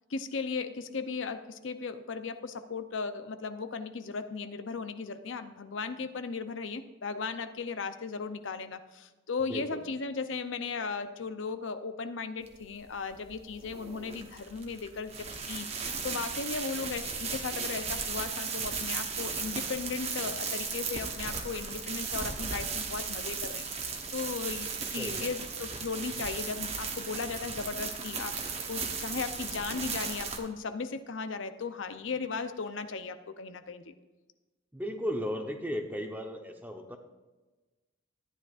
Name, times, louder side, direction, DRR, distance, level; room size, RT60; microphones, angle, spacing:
voice 1, 0.1-28.4 28.7-33.9, left 4 dB, 80° left, 9 dB, 0.6 m, -36 dB
voice 2, 9.4-9.8 24.9-25.3 34.7-37.0, equal, 10° right, 4 dB, 0.9 m, -35 dB
sound 1, 12.5-30.4, right 5 dB, 30° right, 1.0 m, -36 dB
14.0 x 9.8 x 2.5 m, 1.2 s
head